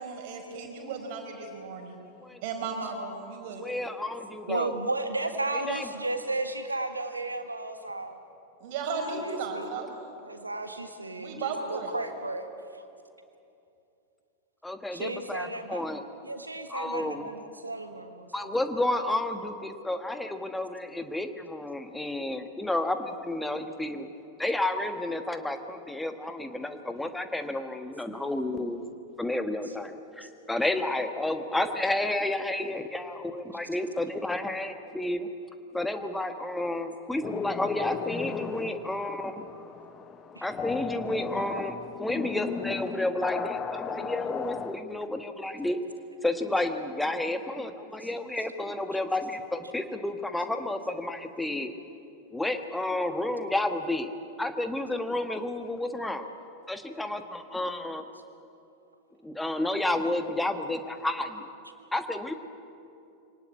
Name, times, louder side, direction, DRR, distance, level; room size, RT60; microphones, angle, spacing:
voice 1, 0.0-2.0 2.4-3.8 8.6-9.9 11.2-11.9, right 4 dB, 50° right, 3 dB, 4.7 m, -35 dB
voice 2, 3.6-4.8 5.7-5.8 14.6-16.0 16.7-17.3 18.3-24.1 24.4-28.8 29.2-35.3 35.7-39.4 40.4-45.8 46.2-51.7 52.3-54.1 54.4-56.3 56.7-58.0 59.2-61.5 61.9-62.3, left 1 dB, 5° left, 7 dB, 1.4 m, -31 dB
voice 3, 4.5-8.2 9.0-9.7 10.2-12.5 12.7-12.9 14.9-15.8 16.2-18.5 29.7-29.8 30.2-30.3 40.3-40.5 48.0-48.1, right 2 dB, 80° right, 7 dB, 1.7 m, -34 dB
sound 1, 37.2-44.8, left 6 dB, 25° left, 1.1 m, -35 dB
24.5 x 18.5 x 8.5 m, 2.7 s
figure-of-eight pair, 90°, 0 cm